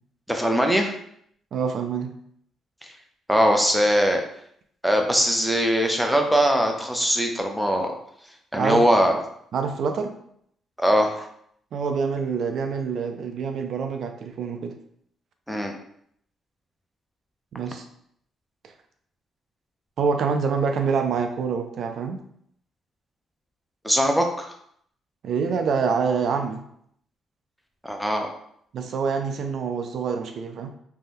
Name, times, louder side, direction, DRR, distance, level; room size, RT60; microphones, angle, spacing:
voice 1, 0.3-0.9 3.3-4.2 4.8-7.9 8.5-9.2 10.8-11.3 15.5-15.7 23.8-24.5 27.8-28.3, equal, ahead, 3 dB, 0.5 m, -21 dB
voice 2, 1.5-2.1 8.5-8.9 9.1-9.2 9.5-10.2 11.7-14.8 17.5-17.9 20.0-22.2 25.2-26.7 28.7-30.7, right 5 dB, 65° right, 6 dB, 0.3 m, -26 dB
2.6 x 2.2 x 3.4 m, 0.68 s
cardioid pair, 90°, 0 cm